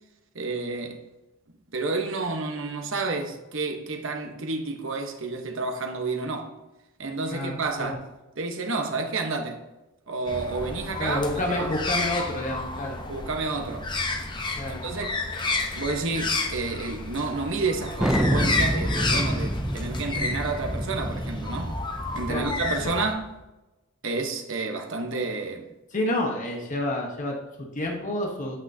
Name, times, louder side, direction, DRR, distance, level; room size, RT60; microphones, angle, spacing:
voice 1, 0.3-1.0 1.7-6.5 7.0-8.0 8.4-9.6 10.1-11.2 11.5-11.7 13.1-13.9 14.7-15.3 15.7-21.7 22.1-23.3 24.0-25.7, right 3 dB, 65° right, 1.1 m, -30 dB
voice 2, 7.3-8.0 11.0-13.0 14.6-14.8 22.3-22.5 25.9-28.6, left 1 dB, 40° left, 1.2 m, -29 dB
sound 1, 10.3-23.1, left 3 dB, 20° left, 0.8 m, -31 dB
Thunder, 18.0-23.2, equal, 5° right, 0.5 m, -28 dB
8.7 x 8.2 x 2.8 m
head